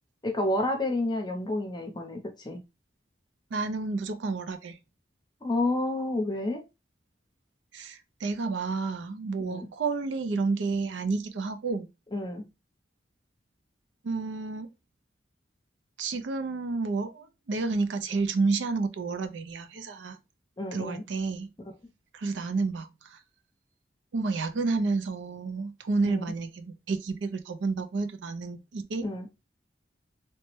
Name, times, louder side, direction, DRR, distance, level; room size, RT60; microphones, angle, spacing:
voice 1, 0.2-2.6 5.4-6.6 9.4-9.7 12.1-12.4 20.6-21.0 26.0-26.3 29.0-29.3, left 1 dB, 25° left, 0.6 m, -30 dB
voice 2, 3.5-4.8 7.7-11.9 14.0-14.7 16.0-20.2 20.7-21.5 22.1-23.2 24.1-29.1, right 3 dB, 80° right, 0.4 m, -30 dB
3.2 x 2.1 x 3.0 m
head